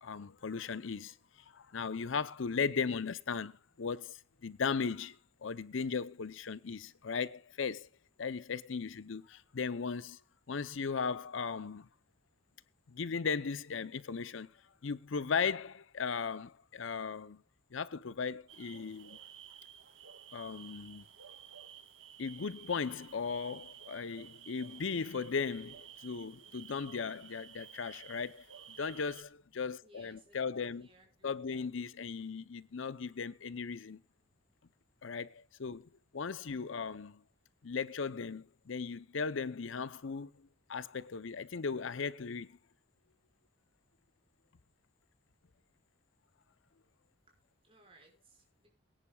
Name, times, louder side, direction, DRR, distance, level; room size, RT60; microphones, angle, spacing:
voice 1, 0.0-7.9 8.2-10.2 10.5-11.9 12.9-14.5 14.8-17.4 17.7-19.2 20.3-21.0 22.2-30.9 31.2-34.0 35.0-37.2 37.6-42.6, left 5 dB, 75° left, 0.6 m, -37 dB
sound 1, 18.5-29.2, right 9 dB, 80° right, 1.4 m, -53 dB
voice 2, 29.8-31.7 47.6-48.7, right 2 dB, 25° right, 5.5 m, -63 dB
23.0 x 10.0 x 2.3 m
head